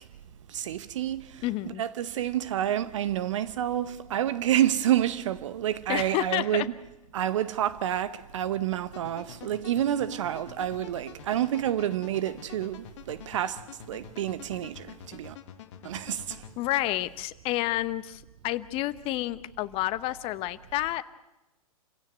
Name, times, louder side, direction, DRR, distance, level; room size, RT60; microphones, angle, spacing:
voice 1, 0.5-1.4 1.8-6.7 7.1-13.6 13.9-15.4 15.8-16.4, right 11 dB, 55° right, 0.9 m, -29 dB
voice 2, 1.4-1.8 5.9-6.7 16.6-21.0, left 16 dB, 30° left, 0.9 m, -30 dB
sound 1, 8.9-16.5, left 9 dB, 50° left, 1.8 m, -47 dB
27.5 x 16.5 x 8.0 m
figure-of-eight pair, 115°, 19 cm